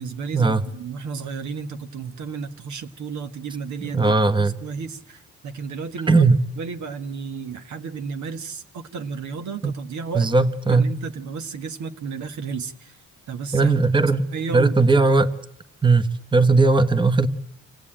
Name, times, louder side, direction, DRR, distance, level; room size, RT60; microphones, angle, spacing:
voice 1, 0.0-6.2 6.6-10.3 10.7-13.0 13.3-13.7 14.3-15.1, right 5 dB, 70° right, 8 dB, 1.6 m, -33 dB
voice 2, 3.8-4.5 6.1-6.4 9.6-9.7 10.1-10.9 13.5-14.2 14.5-15.3 15.8-17.3, right 3 dB, 15° right, 10 dB, 1.3 m, -18 dB
27.0 x 16.0 x 8.9 m, 0.76 s
cardioid pair, 90°, 30 cm